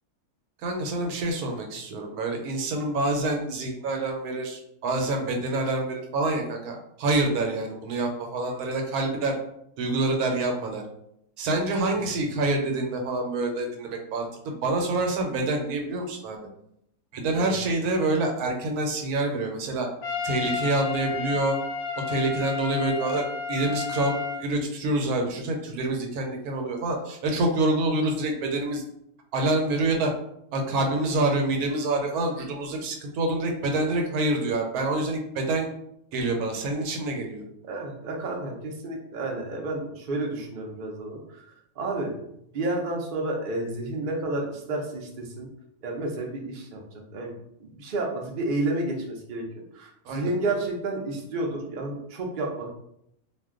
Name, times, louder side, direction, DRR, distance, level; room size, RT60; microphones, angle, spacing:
voice 1, 0.6-9.4 9.8-10.8 11.4-16.4 17.1-19.9 20.2-21.6 22.1-28.8 29.3-30.1 30.5-35.7 36.1-37.4 50.1-50.3, right 2 dB, 85° right, 2 dB, 1.1 m, -27 dB
Trumpet, 20.0-24.4, left 5 dB, 85° left, 1.1 m, -31 dB
voice 2, 37.6-41.4 41.8-42.1 42.5-45.5 45.8-46.8 47.1-47.3 47.6-49.4 49.7-52.7, right 2 dB, 55° right, 0 dB, 0.5 m, -30 dB
2.5 x 2.2 x 3.6 m, 0.75 s
omnidirectional pair, 1.6 m